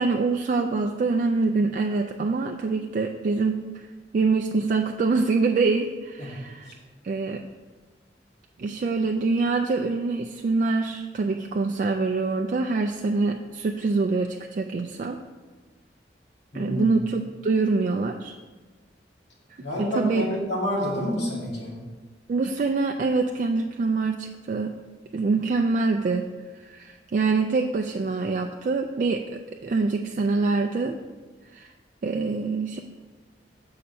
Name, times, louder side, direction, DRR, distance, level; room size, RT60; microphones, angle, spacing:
voice 1, 0.0-3.8 4.1-6.7 7.0-7.4 8.6-15.2 16.5-18.3 19.8-20.2 22.3-24.7 25.1-26.3 26.6-31.0 31.5-31.7 32.0-32.8, right 3 dB, 45° right, 4 dB, 0.3 m, -25 dB
voice 2, 16.5-16.9 19.6-21.7, left 1 dB, 80° left, -5 dB, 2.4 m, -28 dB
6.7 x 5.6 x 4.2 m, 1.3 s
head